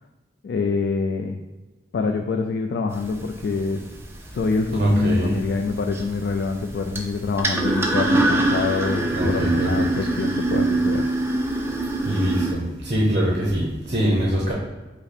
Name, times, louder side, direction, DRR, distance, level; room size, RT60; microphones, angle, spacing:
voice 1, 0.4-1.4 1.9-3.8 4.3-11.1, left 4 dB, 65° left, 4 dB, 0.3 m, -25 dB
sound 1, 2.9-12.5, right 2 dB, 15° right, 0.3 m, -25 dB
voice 2, 4.7-5.3 9.1-9.9 12.0-14.5, right 1 dB, 40° right, -3 dB, 0.7 m, -23 dB
5.5 x 2.1 x 4.1 m, 1.2 s
head